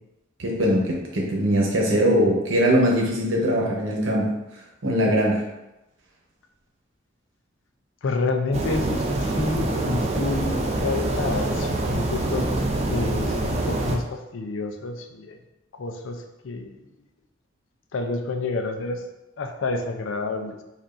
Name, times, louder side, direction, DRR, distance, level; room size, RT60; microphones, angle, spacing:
voice 1, 0.4-4.3 4.8-5.4, equal, 85° right, -2 dB, 0.9 m, -21 dB
voice 2, 8.0-12.6 12.9-15.4 15.7-16.8 17.9-19.0 19.4-20.6, left 3 dB, 80° left, 5 dB, 0.5 m, -29 dB
sound 1, 8.5-14.0, right 2 dB, 35° right, 0.4 m, -25 dB
5.3 x 2.5 x 2.5 m, 0.96 s
head